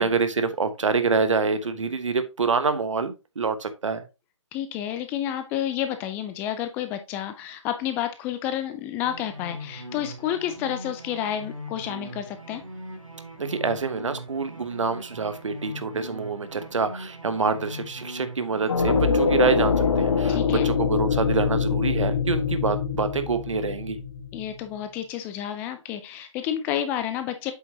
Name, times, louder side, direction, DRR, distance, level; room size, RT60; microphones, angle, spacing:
voice 1, 0.0-4.0 13.4-24.0, right 4 dB, 70° right, 11 dB, 1.2 m, -26 dB
voice 2, 4.5-12.6 20.3-20.7 24.3-27.5, left 10 dB, 10° left, 9 dB, 0.3 m, -30 dB
sound 1, 9.0-20.4, equal, 90° right, 2.1 m, -40 dB
sound 2, 18.7-24.5, left 5 dB, 65° left, 1.4 m, -24 dB
7.9 x 5.8 x 2.8 m, 0.27 s
figure-of-eight pair, 135°, 17 cm